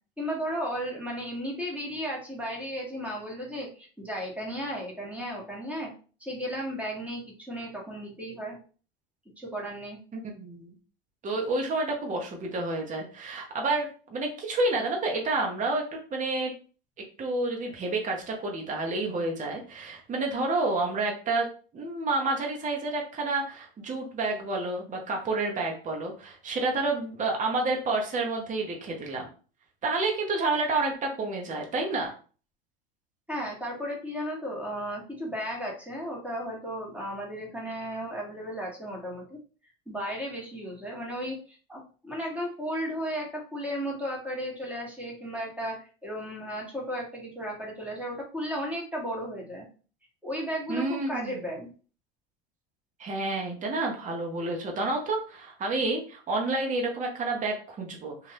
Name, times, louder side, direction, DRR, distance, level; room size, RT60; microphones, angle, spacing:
voice 1, 0.2-5.9 6.2-8.6 9.4-10.0 33.3-39.4 39.9-49.7 50.2-51.7, equal, 5° right, -3 dB, 1.2 m, -34 dB
voice 2, 10.4-10.7 11.2-15.8 16.1-16.5 17.2-21.5 21.7-29.3 29.8-32.1 50.7-51.4 53.0-58.3, right 2 dB, 25° right, 1 dB, 0.9 m, -29 dB
2.5 x 2.4 x 3.3 m, 0.38 s
hypercardioid pair, 95°, 31 cm